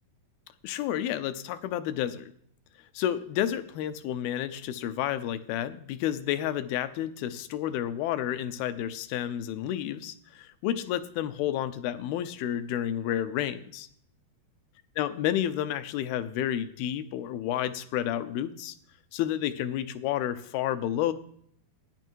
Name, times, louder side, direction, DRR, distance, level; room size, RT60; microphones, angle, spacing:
voice 1, 0.6-2.3 2.9-13.9 15.0-18.8 19.1-21.1, left 11 dB, 80° left, 12 dB, 2.4 m, -30 dB
13.5 x 9.7 x 4.6 m, 0.64 s
omnidirectional pair, 4.6 m